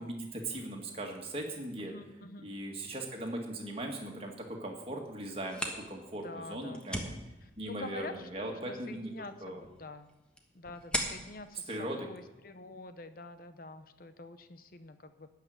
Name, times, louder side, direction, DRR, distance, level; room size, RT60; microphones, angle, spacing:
voice 1, 0.0-1.9 2.4-5.6 5.9-7.1 7.6-9.1 9.4-9.6 11.7-12.1, right 1 dB, 30° right, 1 dB, 2.0 m, -39 dB
voice 2, 1.9-2.5 6.1-10.1 10.5-15.3, left 2 dB, 50° left, 10 dB, 0.8 m, -47 dB
sound 1, 5.3-12.8, equal, 5° left, 1.3 m, -42 dB
13.0 x 5.8 x 9.4 m, 1.0 s
head